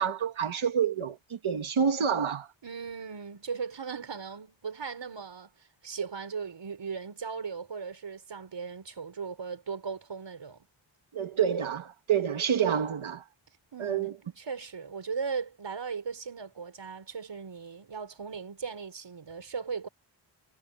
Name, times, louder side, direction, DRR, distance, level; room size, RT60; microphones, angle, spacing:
voice 1, 0.0-2.5 11.1-13.2 13.8-14.1, right 7 dB, 85° right, 1.8 m, -28 dB
voice 2, 2.6-10.7 13.7-14.1 14.4-19.9, right 5 dB, 65° right, 6.1 m, -38 dB
wide cardioid pair, 130°, 47 cm